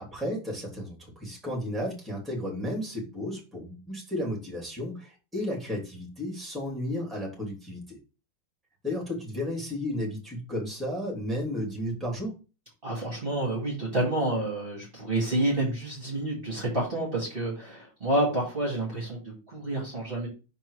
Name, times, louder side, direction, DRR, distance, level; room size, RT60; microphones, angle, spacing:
voice 1, 0.0-8.0 8.8-12.4, left 1 dB, ahead, -2 dB, 2.7 m, -33 dB
voice 2, 12.8-20.3, right 1 dB, 25° right, -4 dB, 2.3 m, -29 dB
6.0 x 4.5 x 4.8 m, 0.31 s
omnidirectional pair, 2.4 m